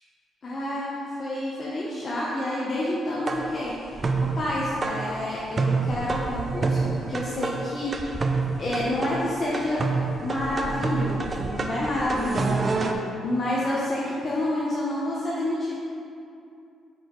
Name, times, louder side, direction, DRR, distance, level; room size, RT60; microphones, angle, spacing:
voice 1, 0.4-8.2 8.6-9.8 10.2-15.8, left 1 dB, 35° left, -7 dB, 1.0 m, -29 dB
sound 1, 3.3-12.9, right 4 dB, 35° right, 0.5 m, -28 dB
5.7 x 5.0 x 4.7 m, 2.5 s
cardioid pair, 90°, 0 cm